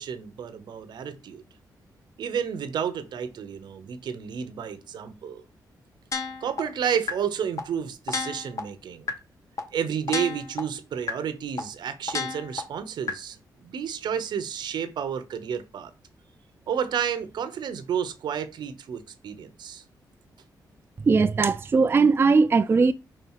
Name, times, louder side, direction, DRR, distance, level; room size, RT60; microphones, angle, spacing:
voice 1, 0.0-1.4 2.2-5.4 6.4-9.1 9.7-15.9 16.7-19.8, right 8 dB, 80° right, 1.0 m, -31 dB
sound 1, 6.1-6.6 7.1-7.2 7.6-7.7 8.1-8.6 9.1-9.2 9.6-9.7 10.1-10.6 11.1-11.2 11.6-11.7 12.1-12.6 13.1-13.2, left 4 dB, 45° left, 1.3 m, -29 dB
voice 2, 21.1-22.9, right 4 dB, 30° right, 0.4 m, -19 dB
5.0 x 4.6 x 5.7 m
cardioid pair, 105°, 7 cm